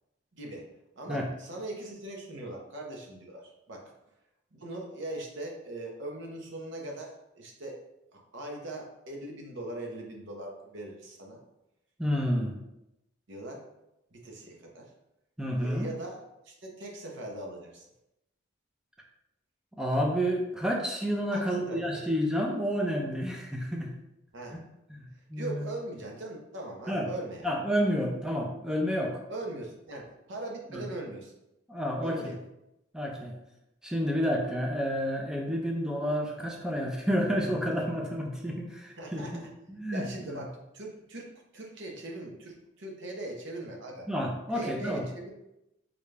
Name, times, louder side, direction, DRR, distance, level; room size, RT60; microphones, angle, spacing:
voice 1, 0.3-0.7 1.0-3.9 4.5-7.8 8.1-11.4 13.3-13.6 14.1-14.9 15.6-17.9 21.3-22.0 24.3-24.6 25.4-27.5 29.3-31.3 32.0-32.4 39.0-39.5 39.9-44.1 44.5-45.3, right 1 dB, 65° right, 0 dB, 0.7 m, -40 dB
voice 2, 12.0-12.6 15.4-15.9 19.8-23.9 24.5-24.6 24.9-25.6 26.9-27.1 27.4-29.2 30.7-30.8 31.7-32.3 32.9-33.3 33.8-39.3 39.7-40.4 44.1-45.0, equal, 5° right, 0 dB, 0.4 m, -30 dB
3.8 x 2.3 x 3.2 m, 0.89 s
head